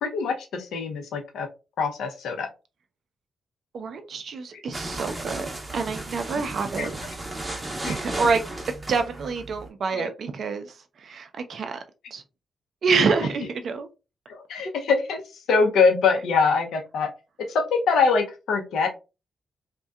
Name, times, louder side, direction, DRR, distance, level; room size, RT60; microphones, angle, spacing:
voice 1, 0.0-1.5 1.8-2.5 6.8-6.9 7.8-8.0 9.9-10.1 14.3-15.2 15.5-17.1 17.5-18.9, left 5 dB, 75° left, 0.5 m, -23 dB
voice 2, 3.7-7.0 7.8-8.4 8.9-11.8 12.1-12.2 12.8-13.9, right 4 dB, 65° right, 0.4 m, -27 dB
sound 1, 4.7-9.7, right 2 dB, 25° right, 0.6 m, -35 dB
2.5 x 2.2 x 2.2 m
hypercardioid pair, 45°, 0 cm